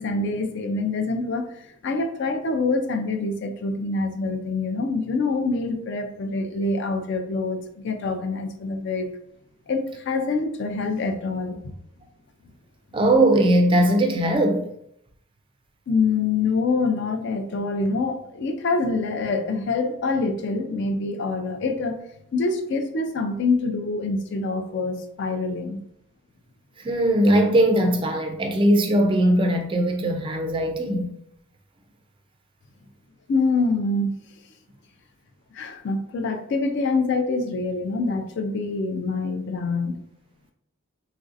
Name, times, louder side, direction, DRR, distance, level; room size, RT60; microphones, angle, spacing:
voice 1, 0.0-9.1 9.7-11.8 15.9-22.0 22.3-25.8 33.3-34.2 35.5-40.0, left 3 dB, 55° left, 0.4 m, -25 dB
voice 2, 12.9-14.7 26.8-31.1, right 1 dB, 25° right, 0.3 m, -20 dB
3.0 x 2.6 x 2.5 m
head